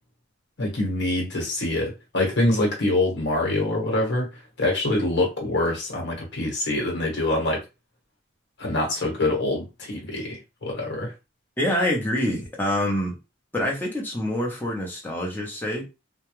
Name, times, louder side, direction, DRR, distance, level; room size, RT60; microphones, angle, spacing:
voice 1, 0.6-7.6 8.6-11.1, left 2 dB, 60° left, 1.1 m, -25 dB
voice 2, 11.6-13.2 13.5-15.9, left 1 dB, 10° left, 0.7 m, -26 dB
2.3 x 2.1 x 3.0 m
head